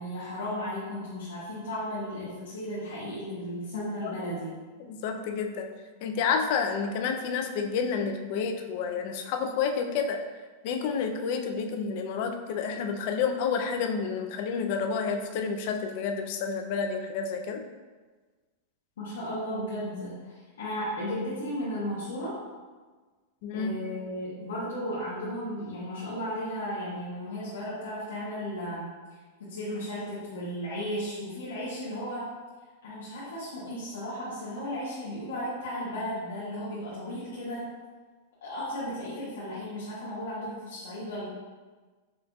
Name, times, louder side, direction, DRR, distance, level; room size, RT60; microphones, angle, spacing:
voice 1, 0.0-4.5 19.0-22.4 23.5-28.9 29.4-32.3 32.8-37.7 38.4-41.2, equal, 90° left, -10 dB, 1.1 m, -35 dB
voice 2, 3.7-4.2 4.8-5.7 6.0-10.2 10.6-17.6 23.4-23.7, left 5 dB, 55° left, 4 dB, 0.4 m, -30 dB
5.5 x 2.5 x 2.3 m, 1.4 s
supercardioid pair, 135°, 0 cm